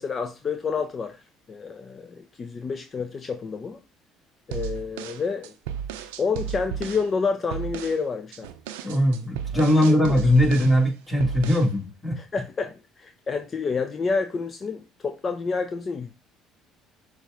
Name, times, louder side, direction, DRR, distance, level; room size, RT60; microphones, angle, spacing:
voice 1, 0.0-3.8 4.5-5.5 6.2-8.5 9.5-10.2 12.2-16.1, left 5 dB, 40° left, 0.4 m, -29 dB
sound 1, 4.5-7.1 7.5-8.0 8.3-10.8 11.2-11.7, right 9 dB, 85° right, 0.4 m, -34 dB
voice 2, 8.8-12.2, equal, 15° left, 1.9 m, -20 dB
6.4 x 2.4 x 3.5 m
hypercardioid pair, 70°, 0 cm